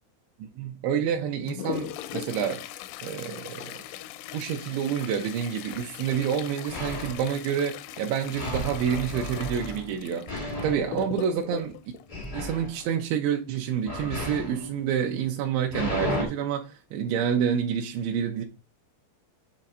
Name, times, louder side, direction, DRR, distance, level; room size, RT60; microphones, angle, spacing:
voice 1, 0.4-2.6 3.0-3.8 4.3-10.3 10.6-11.7 12.3-18.4, right 8 dB, 85° right, 3.2 m, -28 dB
Toilet flush, 1.1-13.1 14.9-15.0 15.4-15.5 16.2-16.3 17.0-17.2 17.7-17.8, left 11 dB, 85° left, 3.0 m, -40 dB
sound 1, 5.7-6.4 6.7-7.1 7.4-7.6 8.0-9.3 9.6-9.7 10.2-10.3, right 4 dB, 65° right, 2.0 m, -40 dB
sound 2, 6.7-7.3 8.3-11.6 12.1-12.8 13.8-16.2, left 1 dB, 35° left, 0.7 m, -34 dB
9.5 x 4.4 x 4.0 m
omnidirectional pair, 5.2 m